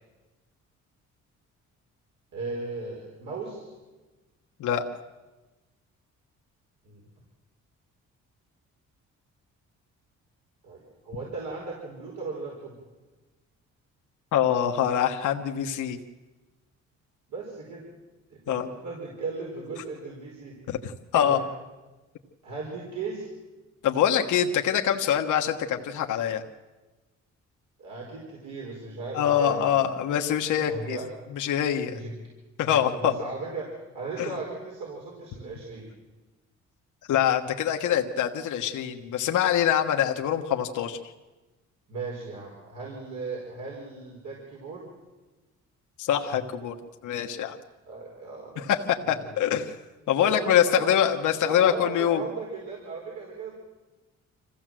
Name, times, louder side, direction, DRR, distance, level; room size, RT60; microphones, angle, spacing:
voice 1, 2.3-3.7 6.8-7.0 10.6-12.8 17.3-17.8 18.3-20.5 21.1-21.4 22.4-23.3 27.8-29.9 30.7-31.0 31.9-32.1 32.6-33.7 33.9-35.9 41.9-44.9 47.9-48.7 49.0-49.4 50.2-51.0 51.4-53.5, right 3 dB, 70° right, -3 dB, 5.1 m, -37 dB
voice 2, 14.3-16.0 18.5-18.7 20.7-21.4 23.8-26.4 29.1-31.0 31.3-32.0 32.6-33.1 34.2-34.3 37.1-41.0 46.0-46.7 47.0-47.6 48.7-49.8 50.1-52.2, left 9 dB, 80° left, 3 dB, 1.3 m, -24 dB
26.0 x 16.0 x 7.6 m, 1.2 s
cardioid pair, 90°, 30 cm